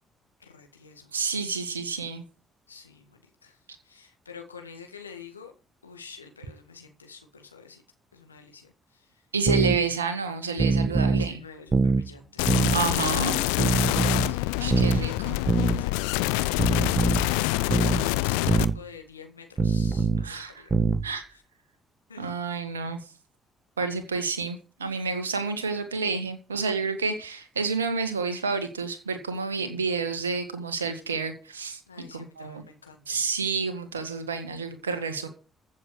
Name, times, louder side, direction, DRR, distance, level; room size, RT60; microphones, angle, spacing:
voice 1, 0.4-1.1 2.7-3.6 3.8-5.5 5.8-7.8 8.1-9.2 11.2-12.7 14.2-20.7 21.3-21.4 22.1-22.3 31.9-33.2, left 5 dB, 85° left, 5 dB, 2.0 m, -48 dB
voice 2, 1.1-2.2 9.3-11.4 12.7-13.4 14.6-15.4 20.2-20.7 21.0-21.2 22.2-23.0 23.8-31.8 32.1-32.6 33.1-35.3, right 4 dB, 80° right, 8 dB, 1.8 m, -29 dB
sound 1, 9.5-9.8 10.6-11.3 11.7-12.1 12.5-12.8 13.6-14.3 14.7-15.0 15.5-15.8 16.6-17.3 17.7-18.0 18.5-18.8 19.6-20.3 20.7-21.1, right 4 dB, 30° right, 1.4 m, -23 dB
sound 2, 12.4-18.6, left 19 dB, 70° left, 0.7 m, -26 dB
15.0 x 7.5 x 6.4 m, 0.34 s
figure-of-eight pair, 45°, 0 cm